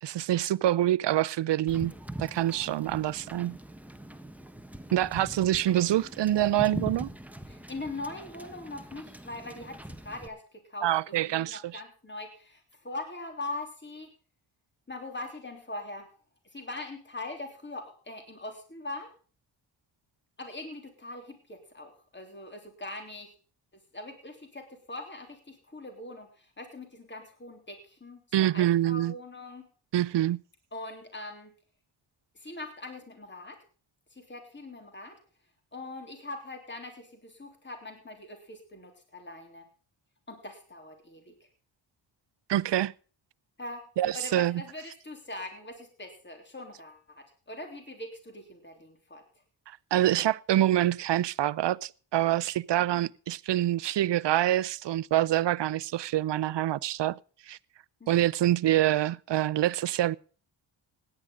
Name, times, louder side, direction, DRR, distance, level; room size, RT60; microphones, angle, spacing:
voice 1, 0.0-1.9 2.2-3.6 4.9-7.1 10.8-11.8 28.3-29.1 29.9-30.4 42.5-42.9 44.0-44.6 49.7-57.2 57.5-57.6 58.1-60.2, right 13 dB, 60° right, 0.6 m, -26 dB
Wind / Boat Water vehicle, 1.7-10.3, right 1 dB, 5° right, 1.1 m, -42 dB
voice 2, 7.5-9.8 10.0-10.4 10.7-14.1 14.9-16.1 16.5-19.1 20.4-23.3 23.9-29.6 30.7-31.5 32.3-33.6 34.1-35.2 35.7-39.6 40.3-41.3 43.6-43.8 44.1-49.2 58.0-58.2, left 2 dB, 20° left, 3.3 m, -42 dB
17.0 x 10.0 x 3.7 m
cardioid pair, 75°, 48 cm